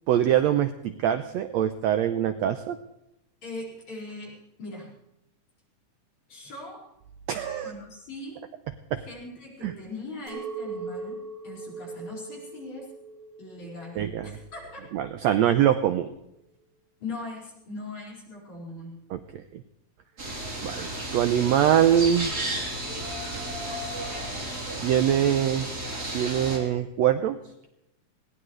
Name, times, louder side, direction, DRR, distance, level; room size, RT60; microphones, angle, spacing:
voice 1, 0.1-2.8 7.3-7.7 8.9-9.0 9.6-9.7 14.0-14.3 14.9-16.1 19.1-19.2 19.5-19.6 20.6-22.3 24.8-25.7 26.1-27.4, right 10 dB, 85° right, 9 dB, 1.5 m, -23 dB
voice 2, 3.4-4.9 6.3-6.8 7.6-8.4 9.1-12.9 13.4-14.8 17.0-19.0, left 2 dB, 55° left, -4 dB, 6.3 m, -40 dB
Chink clink, 10.3-15.4, right 4 dB, 65° right, 3.4 m, -40 dB
sound 1, 20.2-26.6, right 1 dB, 30° right, 3.3 m, -33 dB
21.0 x 18.0 x 3.2 m, 0.84 s
omnidirectional pair, 3.9 m